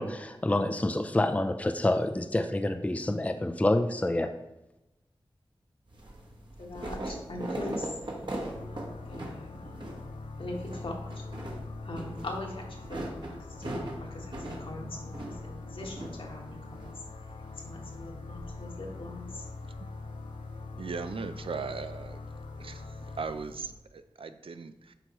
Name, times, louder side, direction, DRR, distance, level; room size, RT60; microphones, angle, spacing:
voice 1, 0.0-4.3, left 1 dB, 15° left, 7 dB, 0.5 m, -27 dB
sound 1, 5.9-23.7, right 1 dB, 55° right, 1.4 m, -42 dB
voice 2, 6.6-9.6 10.4-11.2 11.8-13.1 13.6-16.9 17.6-19.4, left 1 dB, 65° left, 0 dB, 1.5 m, -41 dB
sound 2, 8.5-23.2, left 3 dB, 85° left, 0.6 m, -43 dB
voice 3, 20.8-22.2 22.6-24.9, right 4 dB, 70° right, 10 dB, 0.4 m, -38 dB
7.9 x 4.7 x 3.0 m, 0.95 s
cardioid pair, 45°, 10 cm